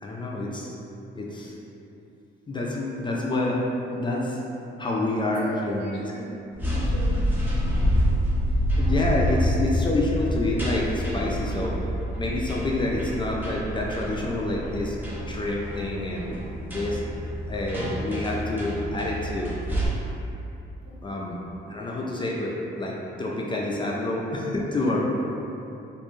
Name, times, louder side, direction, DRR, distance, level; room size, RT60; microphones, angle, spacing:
voice 1, 0.0-0.7 1.2-1.5 2.5-3.6 3.9-4.4 4.8-6.0 8.1-8.2 8.8-11.8 12.2-15.0 15.3-17.0 17.5-19.5 21.0-21.4 21.7-25.0, left 2 dB, 25° left, -3 dB, 0.3 m, -28 dB
voice 2, 5.3-6.4 6.7-7.2 20.8-21.0, equal, 65° right, -6 dB, 0.7 m, -38 dB
sound 1, 6.5-19.9, equal, 10° right, 0.7 m, -27 dB
2.5 x 2.1 x 3.0 m, 2.8 s
cardioid pair, 90°, 20 cm